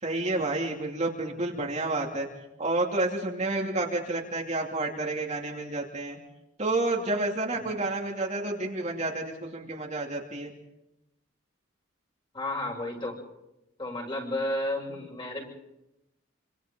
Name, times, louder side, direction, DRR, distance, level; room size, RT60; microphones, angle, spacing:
voice 1, 0.0-2.3 2.6-6.2 6.6-10.5, right 2 dB, 35° right, 0 dB, 2.8 m, -30 dB
voice 2, 12.3-13.2 13.8-15.4, left 1 dB, 25° left, -1 dB, 7.7 m, -32 dB
28.5 x 26.0 x 3.9 m, 0.89 s
head